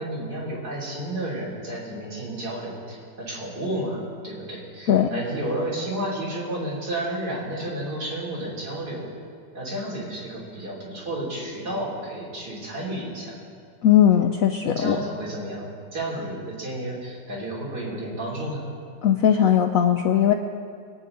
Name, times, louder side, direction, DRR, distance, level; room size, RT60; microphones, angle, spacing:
voice 1, 0.0-4.0 4.2-9.1 9.5-13.4 14.6-15.7 15.9-18.6, right 1 dB, 60° right, -6 dB, 3.8 m, -31 dB
voice 2, 4.9-5.2 13.8-15.0 19.0-20.3, left 9 dB, 70° left, 5 dB, 0.8 m, -19 dB
22.5 x 9.0 x 3.9 m, 2.2 s
omnidirectional pair, 2.0 m